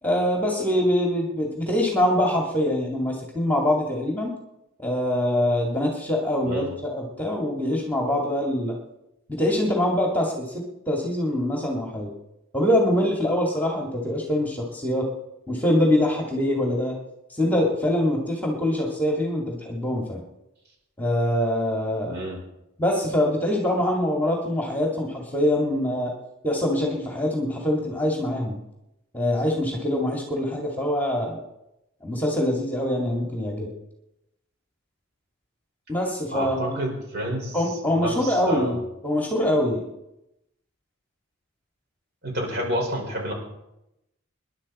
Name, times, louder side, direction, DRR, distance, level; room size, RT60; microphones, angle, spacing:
voice 1, 0.0-4.3 4.8-8.8 9.3-12.1 12.5-15.1 15.5-17.0 17.3-20.2 21.0-22.1 22.8-26.1 26.4-28.6 29.1-31.4 32.0-33.7 35.9-36.8 37.5-39.8, left 1 dB, 10° left, -1 dB, 2.3 m, -24 dB
voice 2, 22.1-22.4 36.3-37.6 37.9-38.8 42.2-43.3, equal, 50° right, 0 dB, 5.4 m, -29 dB
27.5 x 11.0 x 4.3 m, 0.88 s
head